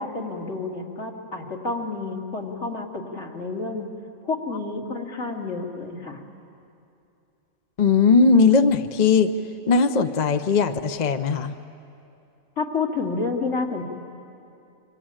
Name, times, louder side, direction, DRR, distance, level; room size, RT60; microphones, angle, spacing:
voice 1, 0.0-3.9 4.2-6.3 12.6-13.8, left 3 dB, 65° left, 0 dB, 2.7 m, -29 dB
voice 2, 7.8-9.3 9.7-11.5, left 4 dB, 40° left, 8 dB, 0.7 m, -18 dB
26.5 x 25.0 x 8.9 m, 2.6 s
omnidirectional pair, 1.4 m